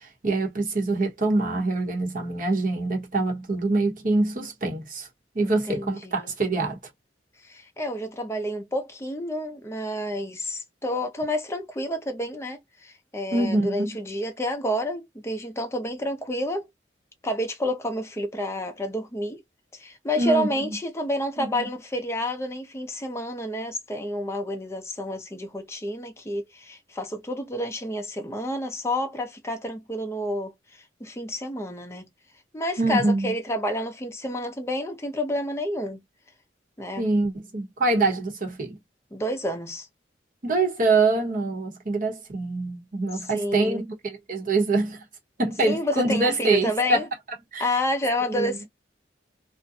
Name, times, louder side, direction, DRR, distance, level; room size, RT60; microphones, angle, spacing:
voice 1, 0.0-5.1 5.3-6.8 13.3-14.0 20.2-20.8 21.4-21.7 32.8-33.3 37.0-38.8 40.4-45.0 45.4-47.0 47.5-47.8 48.3-48.5, right 2 dB, 45° right, 0.9 m, -25 dB
voice 2, 5.4-6.3 7.4-16.7 17.2-19.4 19.7-32.1 32.5-36.0 36.8-37.1 39.1-39.9 43.1-43.8 45.6-47.1 47.6-48.7, left 1 dB, 15° left, 0.6 m, -29 dB
2.5 x 2.2 x 2.6 m
head